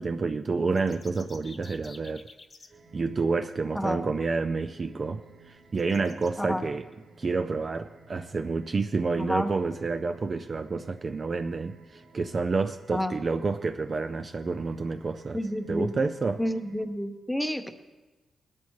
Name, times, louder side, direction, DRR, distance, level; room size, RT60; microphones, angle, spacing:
voice 1, 0.0-2.3 2.9-6.9 7.2-15.4 15.7-16.4, right 4 dB, 30° right, 9 dB, 0.4 m, -29 dB
sound 1, 0.6-2.7 4.5-4.6 5.0-5.1 5.7-6.3, left 3 dB, 30° left, 1.1 m, -51 dB
sound 2, 2.7-16.8, right 3 dB, 55° right, 3.5 m, -55 dB
voice 2, 9.2-9.5 12.9-13.1 15.3-15.9 16.4-17.7, equal, 5° left, 7 dB, 0.8 m, -29 dB
20.5 x 13.0 x 3.1 m, 1.2 s
wide cardioid pair, 165°, 0 cm